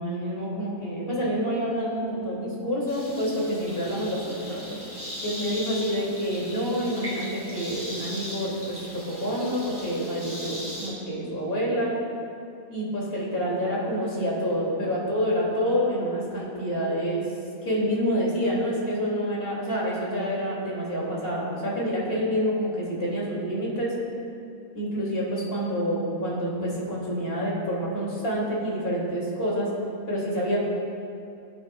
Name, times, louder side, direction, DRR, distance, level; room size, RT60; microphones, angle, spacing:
voice 1, 0.0-4.8 5.2-12.0 12.7-17.3 17.6-23.9 24.7-29.7 30.1-30.6, equal, 45° left, -5 dB, 3.0 m, -28 dB
sound 1, 2.9-10.9, equal, 15° right, 2.9 m, -38 dB
19.5 x 8.7 x 2.4 m, 2.6 s
omnidirectional pair, 1.4 m